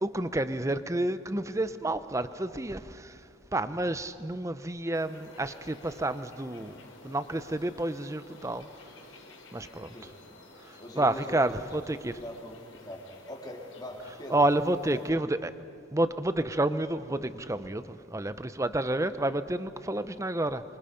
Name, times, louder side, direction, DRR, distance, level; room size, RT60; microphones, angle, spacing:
voice 1, 0.0-3.2 3.5-8.7 9.5-9.9 10.6-12.1 14.3-15.5 15.9-20.6, right 1 dB, 15° right, 12 dB, 0.7 m, -30 dB
sound 1, 4.9-15.1, left 2 dB, 75° left, 4.4 m, -53 dB
voice 2, 10.8-11.8 12.1-14.4 14.9-15.3, equal, 20° left, 0 dB, 3.1 m, -43 dB
27.0 x 24.0 x 5.2 m, 2.6 s
head